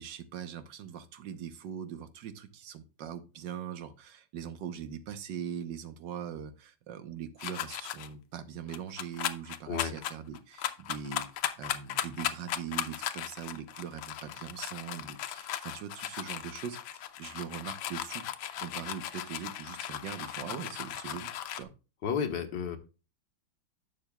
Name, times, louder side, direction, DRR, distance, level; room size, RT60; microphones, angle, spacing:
voice 1, 0.0-11.3 11.6-18.2 18.6-21.7, right 8 dB, 70° right, 11 dB, 1.6 m, -41 dB
sound 1, 7.4-8.1 8.7-21.6, left 11 dB, 85° left, 1.5 m, -37 dB
voice 2, 22.0-22.8, left 7 dB, 65° left, 7 dB, 1.8 m, -32 dB
11.0 x 7.1 x 2.3 m, 0.31 s
omnidirectional pair, 2.1 m